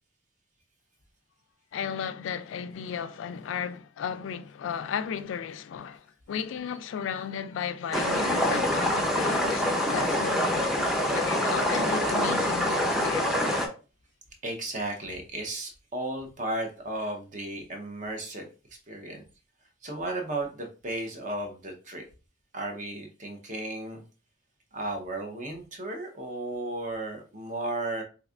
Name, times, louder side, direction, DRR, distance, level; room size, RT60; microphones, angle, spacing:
voice 1, 1.7-13.5, left 7 dB, 90° left, 0.3 m, -35 dB
sound 1, 7.9-13.7, left 1 dB, ahead, 0.5 m, -25 dB
voice 2, 14.4-18.5 18.9-19.2 19.8-22.0 22.5-24.0 24.7-28.0, right 2 dB, 40° right, 0.7 m, -34 dB
3.4 x 3.1 x 2.4 m
head